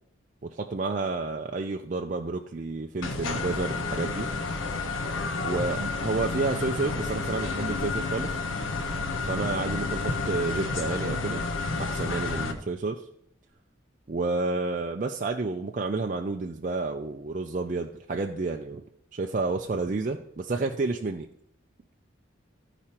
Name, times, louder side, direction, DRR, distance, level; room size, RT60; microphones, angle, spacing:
voice 1, 0.4-4.3 5.4-8.3 9.3-11.4 11.8-13.0 14.1-18.8 19.1-21.3, right 3 dB, 40° right, 3 dB, 0.4 m, -30 dB
sound 1, 3.0-12.5, left 3 dB, 85° left, 1.0 m, -30 dB
14.0 x 4.9 x 4.4 m, 0.72 s
head